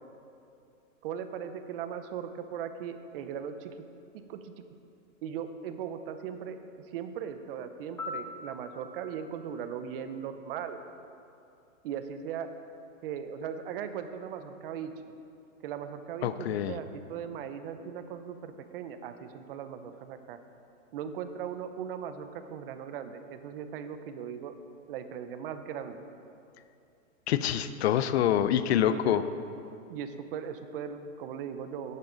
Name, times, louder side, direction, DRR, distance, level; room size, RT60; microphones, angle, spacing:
voice 1, 1.0-3.7 4.1-4.5 5.2-6.6 6.9-10.8 11.8-12.5 13.0-14.9 15.6-20.4 20.9-24.5 24.9-26.0 28.8-29.2 29.9-32.0, right 8 dB, 45° right, 9 dB, 0.9 m, -38 dB
Piano, 8.0-10.9 19.1-19.3, left 2 dB, 5° left, 0.5 m, -44 dB
voice 2, 16.2-16.8 27.3-29.2, left 10 dB, 55° left, 13 dB, 0.7 m, -26 dB
14.0 x 11.0 x 4.0 m, 2.6 s
hypercardioid pair, 145°, 39 cm